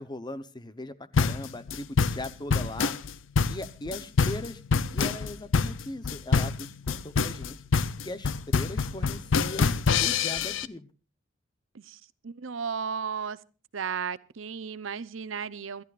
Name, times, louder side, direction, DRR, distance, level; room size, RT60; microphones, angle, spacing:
voice 1, 0.0-2.9 3.5-4.6 4.9-7.6 8.0-10.9, left 1 dB, 20° left, 0.9 m, -39 dB
sound 1, 1.1-10.7, left 5 dB, 80° left, 0.6 m, -26 dB
voice 2, 12.2-13.4 13.7-15.8, right 6 dB, 85° right, 0.7 m, -34 dB
28.0 x 12.5 x 2.5 m
head